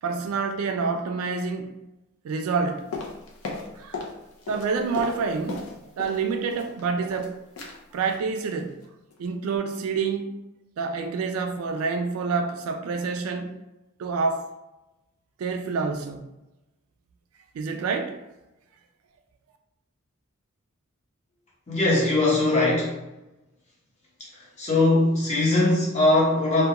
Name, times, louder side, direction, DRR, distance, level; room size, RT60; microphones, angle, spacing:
voice 1, 0.0-1.7 2.2-2.9 3.8-4.0 4.5-5.7 6.0-7.4 7.9-8.8 9.2-10.3 10.8-13.5 14.0-14.5 15.4-16.3 17.5-18.2, right 4 dB, 75° right, 6 dB, 0.3 m, -27 dB
sound 1, 2.9-4.2 4.4-6.2 6.5-7.3 7.6-7.8 8.1-8.3 8.6-8.8 9.1-9.2, left 4 dB, 75° left, 0.5 m, -36 dB
voice 2, 21.7-23.0 24.3-26.7, left 2 dB, 35° left, -5 dB, 0.8 m, -21 dB
2.3 x 2.2 x 2.8 m, 0.97 s
head